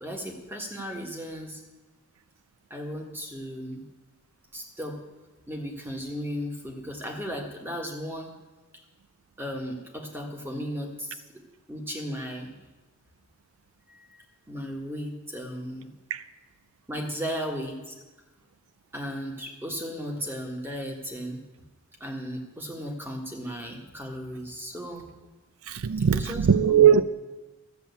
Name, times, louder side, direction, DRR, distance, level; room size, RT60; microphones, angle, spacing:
voice 1, 0.0-1.6 2.7-3.8 4.5-5.0 5.5-8.3 9.4-11.2 11.7-12.5 13.9-15.9 16.9-17.9 18.9-21.4 22.0-25.1 26.1-27.0, equal, 10° right, 1.6 m, -35 dB
voice 2, 25.6-27.0, right 8 dB, 70° right, 0.4 m, -20 dB
13.0 x 7.5 x 8.3 m
head